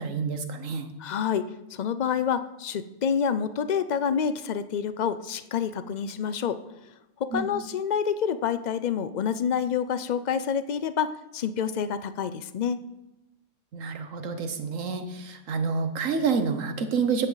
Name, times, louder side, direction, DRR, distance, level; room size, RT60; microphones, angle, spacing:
voice 1, 0.0-0.9 7.3-7.5 13.7-17.3, right 5 dB, 70° right, 8 dB, 1.5 m, -28 dB
voice 2, 1.0-6.6 7.2-12.8, left 7 dB, 60° left, 13 dB, 0.4 m, -28 dB
15.0 x 11.0 x 4.0 m, 0.99 s
omnidirectional pair, 1.4 m